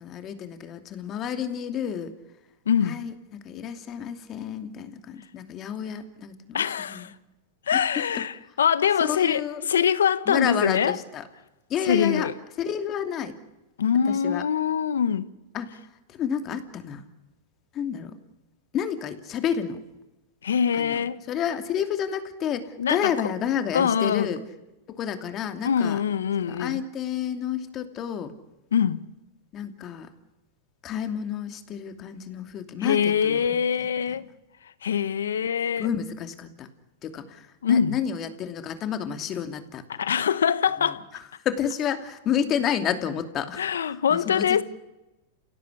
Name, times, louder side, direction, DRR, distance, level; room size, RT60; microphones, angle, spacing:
voice 1, 0.0-2.1 2.8-7.1 7.7-8.2 9.0-9.6 10.3-11.2 11.7-12.3 12.6-13.4 14.1-14.4 15.5-15.8 16.1-17.0 17.7-18.2 18.7-19.8 20.8-21.0 21.3-24.4 24.9-26.0 26.4-28.3 29.5-30.1 30.8-33.6 35.8-36.7 37.0-39.8 40.8-44.6, left 8 dB, 35° left, 2.8 m, -30 dB
voice 2, 2.7-3.0 6.5-7.1 7.7-11.0 11.9-12.3 13.8-15.3 20.4-21.2 22.8-23.1 23.7-24.3 25.6-26.8 28.7-29.0 32.8-34.2 34.8-35.9 37.6-38.0 40.0-41.0 43.6-44.6, left 8 dB, 90° left, 1.3 m, -23 dB
30.0 x 17.0 x 8.5 m
hypercardioid pair, 125°, 0 cm